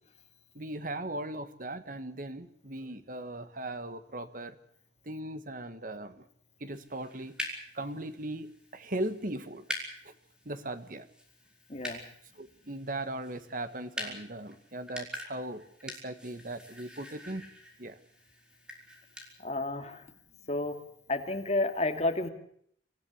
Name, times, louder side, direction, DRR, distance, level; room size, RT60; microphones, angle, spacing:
voice 1, 0.5-4.6 5.0-6.2 6.6-7.3 7.7-9.6 10.0-10.1 10.4-11.1 12.3-17.5 17.8-18.0, right 1 dB, 50° right, 11 dB, 1.7 m, -38 dB
sound 1, 6.7-19.3, left 1 dB, 5° right, 4.5 m, -45 dB
voice 2, 11.7-12.0 19.4-20.0 20.5-20.7 21.1-22.3, left 2 dB, 35° left, 5 dB, 2.6 m, -30 dB
25.5 x 15.0 x 8.5 m, 0.66 s
head